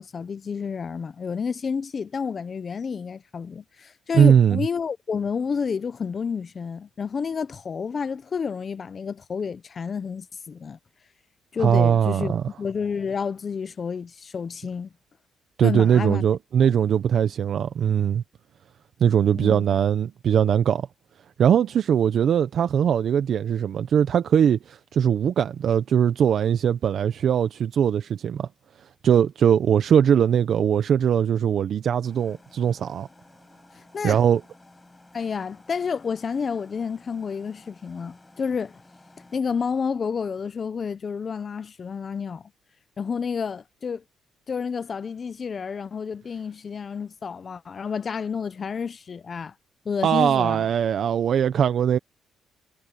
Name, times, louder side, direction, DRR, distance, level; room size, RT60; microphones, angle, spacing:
voice 1, 0.0-10.8 11.5-14.9 15.6-16.2 16.6-16.7 19.3-19.6 33.8-34.2 35.1-38.8 39.3-42.4 43.0-44.0 44.5-49.5 49.8-50.6, left 6 dB, 40° left, 1.0 m, -30 dB
voice 2, 4.1-4.6 11.6-12.4 15.6-18.2 19.0-20.9 21.4-28.5 29.0-33.1 34.0-34.4 50.0-52.0, right 8 dB, 60° right, 0.9 m, -20 dB
sound 1, 32.0-39.4, left 2 dB, 15° left, 6.8 m, -54 dB
cardioid pair, 90°, 0 cm